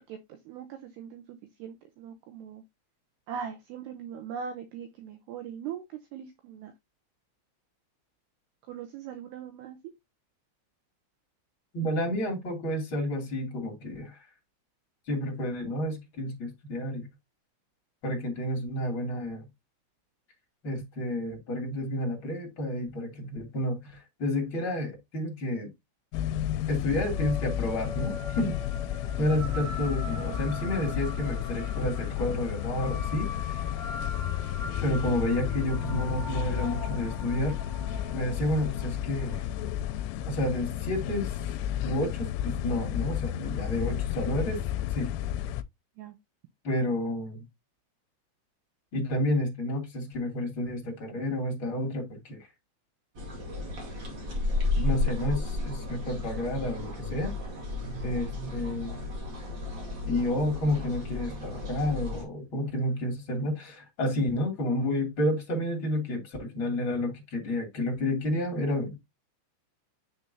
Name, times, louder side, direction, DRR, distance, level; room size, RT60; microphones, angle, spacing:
voice 1, 0.1-1.2 1.6-2.6 3.3-6.7 8.7-9.8 46.0-46.2, right 7 dB, 85° right, 2.4 m, -40 dB
voice 2, 11.7-14.2 15.1-17.1 18.0-19.5 20.6-25.7 26.7-28.6 29.2-33.6 34.8-37.6 38.1-39.5 40.3-41.3 41.8-44.6 44.9-45.1 46.6-47.4 48.9-52.5 54.7-57.3 58.0-59.0 60.1-68.9, left 1 dB, 35° left, 2.6 m, -30 dB
sound 1, 26.1-45.6, left 11 dB, 90° left, 3.2 m, -32 dB
sound 2, 26.9-41.6, left 1 dB, 35° right, 3.4 m, -42 dB
sound 3, 53.1-62.2, left 2 dB, 60° right, 1.2 m, -33 dB
7.1 x 6.9 x 2.7 m
omnidirectional pair, 5.7 m